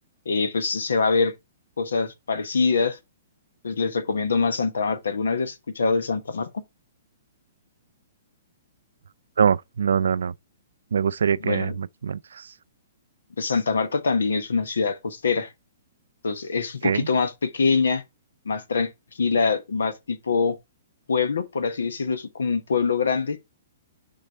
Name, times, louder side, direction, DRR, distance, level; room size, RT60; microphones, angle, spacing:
voice 1, 0.2-1.3 1.8-3.0 3.6-6.6 11.4-11.8 13.4-15.5 16.2-18.0 18.4-18.9 19.2-20.6 21.1-23.4, left 4 dB, 85° left, 1.1 m, -24 dB
voice 2, 9.4-10.3 10.9-12.4 16.8-17.1, right 7 dB, 80° right, 0.3 m, -23 dB
6.7 x 4.0 x 4.2 m
hypercardioid pair, 140°, 0 cm